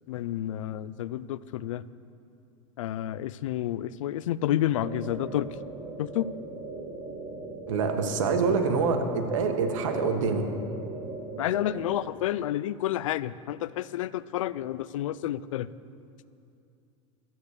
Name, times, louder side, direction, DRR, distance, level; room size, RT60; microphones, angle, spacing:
voice 1, 0.1-1.8 2.8-5.5 6.0-6.3 8.5-8.7 8.9-9.1 11.4-15.7, left 12 dB, 90° left, 18 dB, 0.4 m, -30 dB
sound 1, 4.8-12.1, right 3 dB, 40° right, 1.5 m, -39 dB
voice 2, 7.7-10.5, right 5 dB, 85° right, 5 dB, 1.5 m, -26 dB
14.0 x 8.7 x 6.6 m, 2.5 s
supercardioid pair, 115°, 16 cm